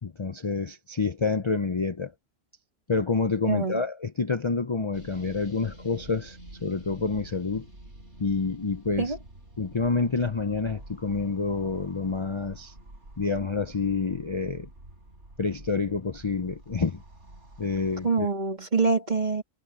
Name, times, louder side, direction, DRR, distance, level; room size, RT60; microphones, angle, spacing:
voice 1, 0.0-2.1 2.9-7.7 8.2-9.1 9.6-12.7 13.2-14.7 15.4-17.0 17.6-18.3, left 4 dB, 30° left, 0.6 m, -28 dB
voice 2, 3.5-3.8 9.0-9.2 18.0-19.4, right 4 dB, 40° right, 2.6 m, -25 dB
sound 1, 4.9-18.1, right 1 dB, 90° right, 6.7 m, -48 dB
omnidirectional pair, 1.2 m